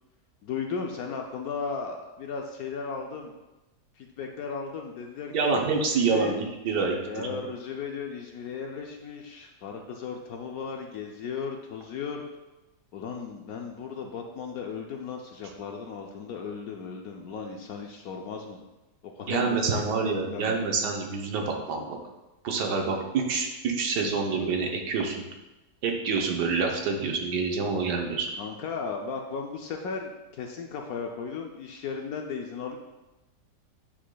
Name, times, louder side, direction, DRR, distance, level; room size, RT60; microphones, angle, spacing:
voice 1, 0.4-3.3 4.0-6.4 7.1-12.2 12.9-18.6 19.0-20.6 28.4-32.8, left 5 dB, 70° left, 2 dB, 0.9 m, -36 dB
voice 2, 5.3-7.4 19.3-22.0 22.4-25.3 25.8-28.3, right 4 dB, 75° right, 1 dB, 1.4 m, -27 dB
8.9 x 4.8 x 2.2 m, 1.0 s
omnidirectional pair, 1.9 m